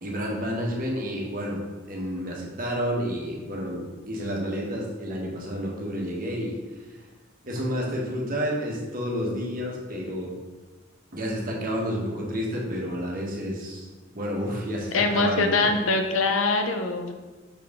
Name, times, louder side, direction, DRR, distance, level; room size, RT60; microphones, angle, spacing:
voice 1, 0.0-6.6 6.9-7.0 7.4-10.3 11.1-13.9 14.1-15.7, equal, 45° right, -2 dB, 1.3 m, -30 dB
voice 2, 14.9-17.1, left 3 dB, 90° left, 5 dB, 0.7 m, -23 dB
5.8 x 4.7 x 3.6 m, 1.2 s
head